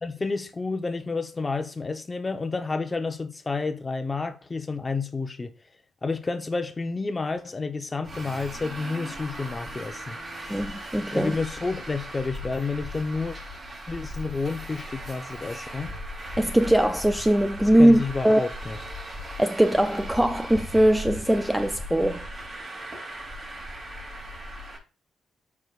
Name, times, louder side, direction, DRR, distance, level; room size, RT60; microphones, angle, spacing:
voice 1, 0.0-5.5 6.0-10.2 11.1-13.4 13.9-15.9 17.8-18.8, left 4 dB, 25° left, 0.9 m, -30 dB
Traffic noise roadway noise, 8.0-24.8, equal, 30° right, 3.4 m, -38 dB
voice 2, 10.5-11.4 16.4-18.4 19.4-22.2, right 1 dB, 5° right, 0.4 m, -21 dB
13.5 x 4.9 x 2.5 m
cardioid pair, 90°, 0 cm